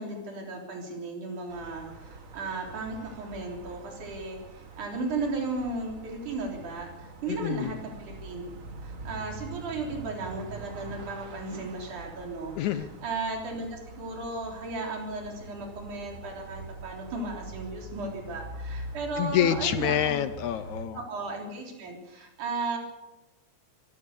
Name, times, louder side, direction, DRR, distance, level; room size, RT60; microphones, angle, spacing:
voice 1, 0.0-8.4 8.8-12.5 13.0-20.2 20.9-22.8, right 3 dB, 90° right, 1 dB, 5.0 m, -35 dB
sound 1, 1.5-20.9, right 3 dB, 40° right, 1.2 m, -44 dB
voice 2, 7.3-7.8 12.6-12.9 19.2-21.0, left 11 dB, 75° left, 12 dB, 2.1 m, -27 dB
24.5 x 16.5 x 6.8 m, 1.0 s
omnidirectional pair, 3.4 m